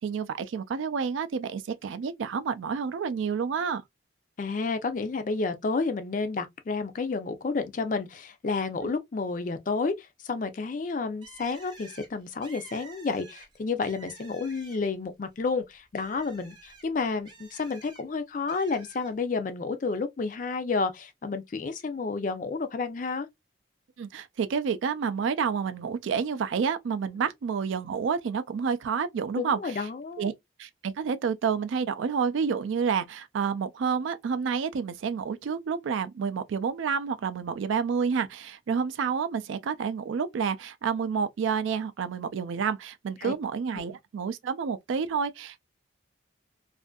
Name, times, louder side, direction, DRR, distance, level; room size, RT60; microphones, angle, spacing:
voice 1, 0.0-3.8 24.0-29.9 30.2-30.3 30.6-45.6, right 6 dB, 80° right, 0.3 m, -29 dB
voice 2, 4.4-23.3 29.4-30.3 43.2-43.3 43.7-43.8, left 4 dB, 40° left, 0.4 m, -30 dB
Bird, 11.2-15.0 15.4-18.0 18.5-19.1, right 4 dB, 25° right, 0.6 m, -50 dB
2.5 x 2.4 x 2.2 m
head